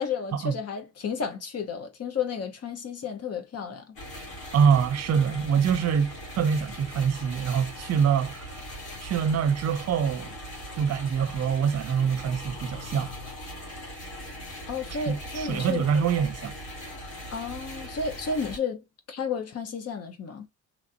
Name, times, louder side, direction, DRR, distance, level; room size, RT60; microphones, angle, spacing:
voice 1, 0.0-4.0 14.7-15.9 17.3-20.5, left 5 dB, 55° left, 1.0 m, -32 dB
sound 1, 4.0-18.6, equal, 90° left, 2.1 m, -40 dB
voice 2, 4.5-8.5 9.0-10.4 10.7-13.1 15.0-16.5, right 7 dB, 60° right, 0.6 m, -25 dB
3.1 x 2.7 x 2.6 m
cardioid pair, 90°, 30 cm